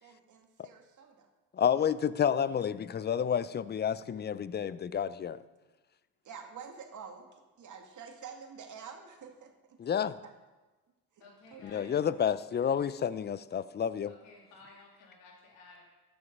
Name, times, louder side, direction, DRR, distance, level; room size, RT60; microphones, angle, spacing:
voice 1, 0.0-1.3 1.8-1.9 6.2-9.8 10.2-10.3 11.1-11.2 11.5-11.9, right 6 dB, 55° right, 3 dB, 2.0 m, -48 dB
voice 2, 1.5-5.4 9.8-10.2 11.6-14.1, left 8 dB, 30° left, 17 dB, 0.5 m, -30 dB
voice 3, 11.2-11.9 14.1-15.8, left 3 dB, 85° left, -2 dB, 3.0 m, -55 dB
13.5 x 6.9 x 5.3 m, 1.2 s
supercardioid pair, 75°, 36 cm